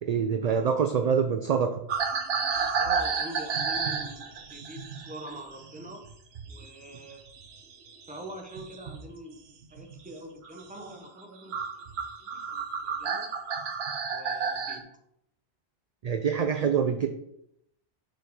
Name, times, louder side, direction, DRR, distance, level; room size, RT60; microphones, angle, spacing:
voice 1, 0.0-1.8 16.0-17.1, right 6 dB, 55° right, 7 dB, 0.4 m, -25 dB
sound 1, 1.9-6.7 7.0-9.1 9.6-10.0 10.4-10.6 11.2-11.3 11.5-14.8, right 5 dB, 75° right, 1.1 m, -31 dB
voice 2, 2.8-6.0 6.5-7.2 8.1-9.4 9.7-11.8 12.2-13.3 14.1-14.9, right 1 dB, 10° right, 2 dB, 1.0 m, -44 dB
6.5 x 4.5 x 4.7 m, 0.77 s
omnidirectional pair, 1.1 m